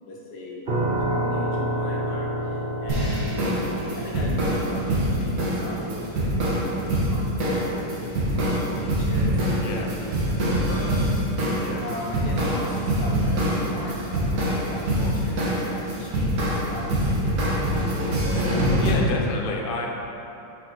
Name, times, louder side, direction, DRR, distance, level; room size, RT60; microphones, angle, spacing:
voice 1, 0.0-3.5 3.9-11.1 11.4-11.5 11.8-18.2, left 2 dB, 80° left, -3 dB, 1.4 m, -38 dB
sound 1, 0.7-13.5, right 1 dB, 50° right, 0.6 m, -32 dB
sound 2, 2.9-18.9, right 1 dB, 75° right, 1.6 m, -25 dB
voice 2, 18.8-19.9, left 3 dB, 60° left, 0 dB, 0.5 m, -30 dB
6.4 x 5.7 x 3.0 m, 3.0 s
omnidirectional pair, 1.6 m